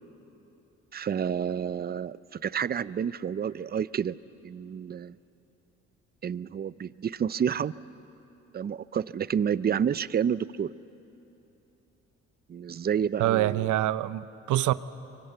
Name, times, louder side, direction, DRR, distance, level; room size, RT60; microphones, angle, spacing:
voice 1, 0.9-4.2 4.4-5.2 6.2-7.7 8.5-10.7 12.5-13.7, right 8 dB, 30° right, 18 dB, 0.5 m, -29 dB
voice 2, 13.2-14.7, right 14 dB, 80° right, 15 dB, 0.7 m, -25 dB
25.5 x 23.5 x 8.0 m, 3.0 s
cardioid pair, 90°, 30 cm